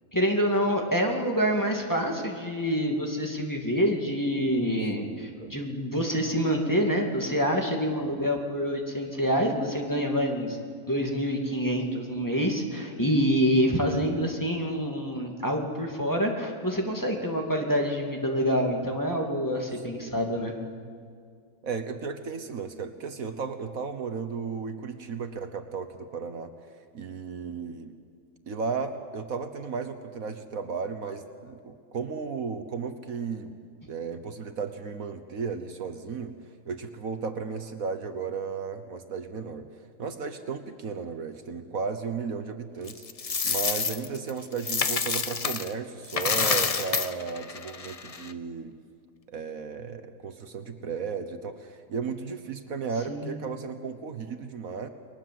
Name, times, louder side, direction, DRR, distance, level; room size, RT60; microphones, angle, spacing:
voice 1, 0.1-10.6 10.9-20.5 53.1-53.4, equal, 10° left, 1 dB, 2.4 m, -27 dB
voice 2, 5.0-5.5 8.0-8.3 19.9-20.2 21.6-26.5 26.9-28.0 28.5-33.5 33.9-36.3 36.7-39.7 40.0-43.0 43.4-48.8 49.3-54.9, right 5 dB, 65° right, 8 dB, 1.6 m, -34 dB
Coin (dropping), 42.9-45.7 46.0-48.3, left 5 dB, 35° left, 0.6 m, -28 dB
30.0 x 21.5 x 7.8 m, 2.2 s
omnidirectional pair, 1.6 m